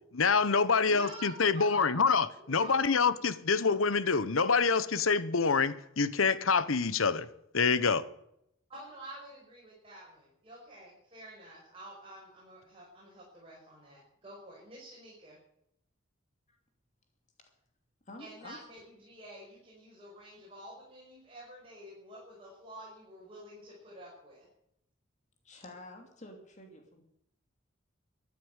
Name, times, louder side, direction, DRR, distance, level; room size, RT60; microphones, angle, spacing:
voice 1, 0.1-7.3 7.5-8.0, left 5 dB, 85° left, 15 dB, 1.1 m, -26 dB
voice 2, 0.8-2.0 2.3-3.1 8.7-15.4 18.2-24.5, right 1 dB, 30° right, -5 dB, 6.0 m, -49 dB
voice 3, 18.1-18.6 25.4-27.0, left 1 dB, 35° left, 3 dB, 2.8 m, -49 dB
14.5 x 10.0 x 9.1 m, 0.76 s
head